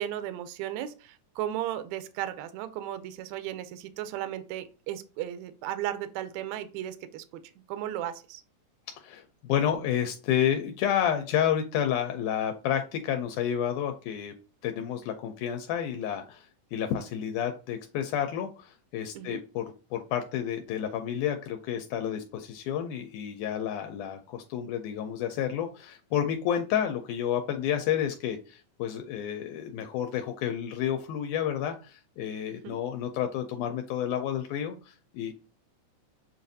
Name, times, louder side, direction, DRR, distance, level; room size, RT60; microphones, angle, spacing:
voice 1, 0.0-7.4 7.7-8.4 19.1-19.4 32.6-32.8, right 12 dB, 80° right, 11 dB, 1.7 m, -35 dB
voice 2, 9.0-14.3 14.6-35.3, left 9 dB, 80° left, 5 dB, 2.0 m, -30 dB
7.1 x 2.5 x 2.6 m, 0.34 s
omnidirectional pair, 3.6 m